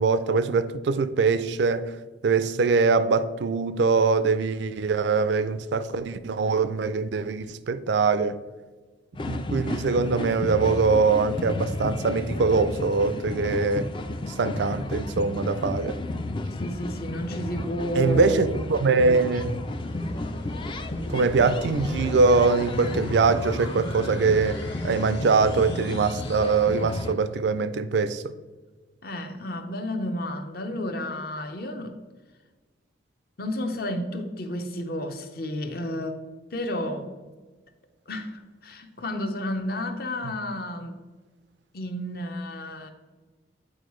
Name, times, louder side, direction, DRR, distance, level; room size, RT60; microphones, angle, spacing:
voice 1, 0.0-1.9 2.2-8.4 9.3-13.9 14.4-16.0 18.0-19.6 21.1-28.3 40.2-40.3, right 4 dB, 70° right, 0.4 m, -23 dB
sound 1, 9.1-27.1, left 2 dB, 25° left, 0.3 m, -32 dB
voice 2, 16.6-18.6 29.0-32.0 33.4-36.2 36.5-37.3 38.1-41.0 41.7-42.9, left 1 dB, 50° left, 0.7 m, -31 dB
sound 2, 19.4-27.3, left 1 dB, 70° left, 1.6 m, -41 dB
8.6 x 4.6 x 3.1 m
head